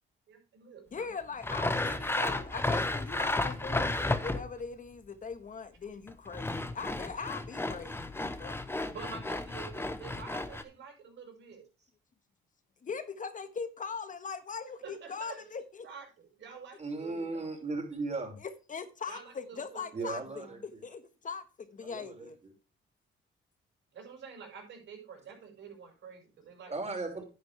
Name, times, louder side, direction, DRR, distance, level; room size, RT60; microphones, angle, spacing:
voice 1, 0.3-1.1 8.9-11.6 14.8-15.4 15.8-17.5 19.1-20.6 23.9-26.7 27.1-27.2, right 5 dB, 70° right, 5.7 m, -48 dB
voice 2, 0.9-8.8 12.8-15.9 18.7-22.4, left 5 dB, 40° left, 1.4 m, -41 dB
Sawing, 1.4-4.6 6.1-10.6, left 2 dB, 10° left, 1.2 m, -33 dB
voice 3, 16.8-18.4 19.9-20.8 21.8-22.5 26.7-27.2, right 3 dB, 35° right, 5.5 m, -37 dB
10.5 x 9.5 x 3.4 m
cardioid pair, 90°, 20 cm